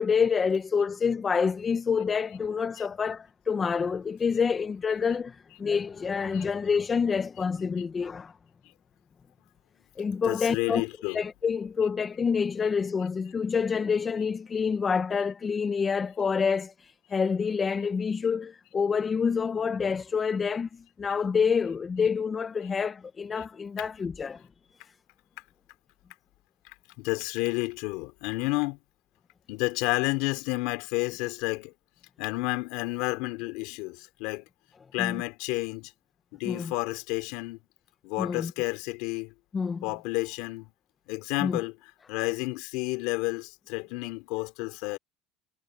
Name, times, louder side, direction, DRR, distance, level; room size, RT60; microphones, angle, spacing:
voice 1, 0.0-8.3 10.0-10.8 11.1-24.4 35.0-35.2 36.4-36.7 38.2-38.5 39.5-39.8 41.4-41.6, left 6 dB, 25° left, 1.2 m, -27 dB
voice 2, 10.2-11.2 11.8-11.9 23.8-23.9 27.0-28.8 29.5-31.7 32.2-34.4 34.9-35.9 36.3-37.6 38.0-39.3 39.8-40.7 41.1-41.8 42.1-45.0, left 24 dB, 75° left, 4.2 m, -30 dB
supercardioid pair, 120°, 0 cm